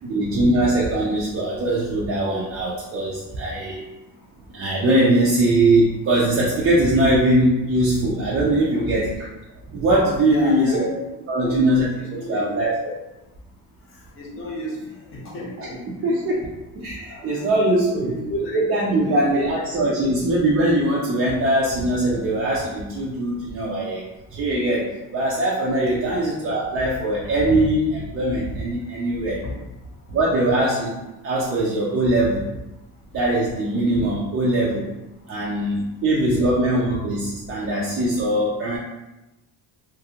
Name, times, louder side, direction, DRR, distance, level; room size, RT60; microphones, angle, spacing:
voice 1, 0.0-3.8 4.5-9.3 9.7-10.9 11.3-12.9 15.6-15.7 16.0-18.2 18.5-24.0 24.3-29.4 30.1-31.0 31.2-32.5 33.1-34.9 35.3-38.8, right 1 dB, 40° right, -5 dB, 0.4 m, -21 dB
voice 2, 10.2-10.9 11.3-12.5 14.2-15.8 17.1-17.6 17.9-18.6 19.0-19.5 26.0-26.1 29.4-29.5 36.1-36.5, equal, 35° left, -3 dB, 0.7 m, -32 dB
2.5 x 2.4 x 2.7 m, 0.99 s
cardioid pair, 165°, 36 cm